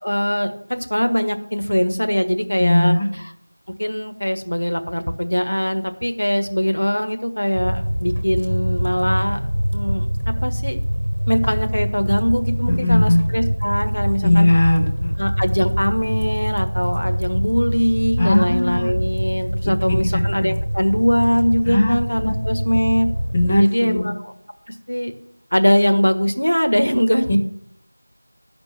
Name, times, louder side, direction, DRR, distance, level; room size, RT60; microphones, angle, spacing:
voice 1, 0.0-3.3 3.8-9.4 9.7-10.1 10.4-10.8 11.3-14.5 15.2-23.1 23.6-24.3 24.7-25.1 25.5-27.4, equal, 75° left, 7 dB, 1.4 m, -21 dB
voice 2, 2.6-3.1 12.7-13.2 14.2-15.1 18.2-18.9 21.7-22.0 22.2-22.3 23.3-24.0 27.3-27.4, left 1 dB, 5° left, 1 dB, 0.3 m, -18 dB
sound 1, 7.5-23.6, equal, 30° right, 1.1 m, -24 dB
12.0 x 5.2 x 7.3 m, 0.73 s
figure-of-eight pair, 180°, 0 cm